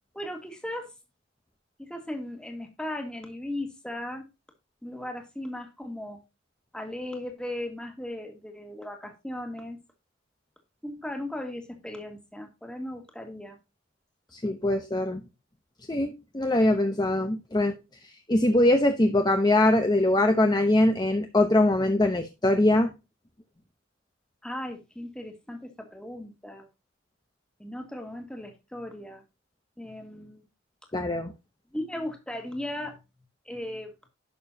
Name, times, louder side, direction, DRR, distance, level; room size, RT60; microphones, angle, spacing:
voice 1, 0.1-0.9 1.8-4.3 4.8-6.2 6.7-9.8 10.8-13.6 24.4-26.7 27.6-29.2 29.8-30.5 31.7-33.0 33.5-33.9, left 1 dB, 5° left, 1.9 m, -37 dB
voice 2, 14.3-15.2 15.9-17.7 18.3-22.9 30.9-31.3, left 1 dB, 20° left, 0.9 m, -22 dB
11.5 x 6.7 x 2.8 m
head